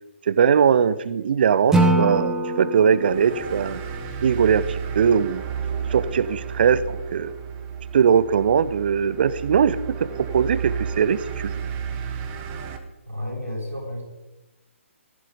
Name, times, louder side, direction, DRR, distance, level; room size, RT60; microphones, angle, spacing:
voice 1, 0.3-3.8 4.2-5.5 5.9-7.3 7.9-11.6, right 7 dB, 45° right, 17 dB, 0.8 m, -20 dB
Acoustic guitar / Strum, 1.7-4.9, right 1 dB, 5° right, 1.6 m, -24 dB
sound 1, 2.9-12.8, right 7 dB, 20° right, 1.6 m, -32 dB
voice 2, 13.1-14.0, left 1 dB, 85° right, -2 dB, 6.8 m, -31 dB
16.0 x 15.0 x 5.1 m, 1.0 s
figure-of-eight pair, 135°, 7 cm